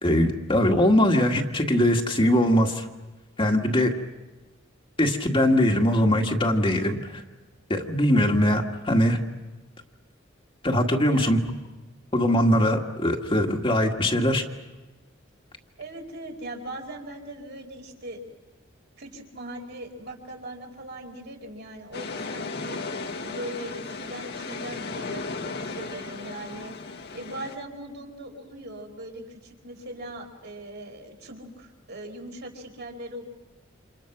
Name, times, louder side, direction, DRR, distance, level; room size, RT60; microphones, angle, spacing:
voice 1, 0.0-2.9 3.4-3.9 5.0-7.2 7.7-9.2 10.6-11.4 12.1-14.4, left 1 dB, 25° left, 2 dB, 1.9 m, -21 dB
voice 2, 10.9-11.5 15.8-18.2 19.0-22.8 23.2-26.7 27.1-33.2, right 1 dB, 60° right, 2 dB, 5.0 m, -40 dB
sound 1, 21.9-27.6, left 3 dB, 55° left, 1.7 m, -35 dB
29.0 x 27.5 x 6.0 m, 1.1 s
head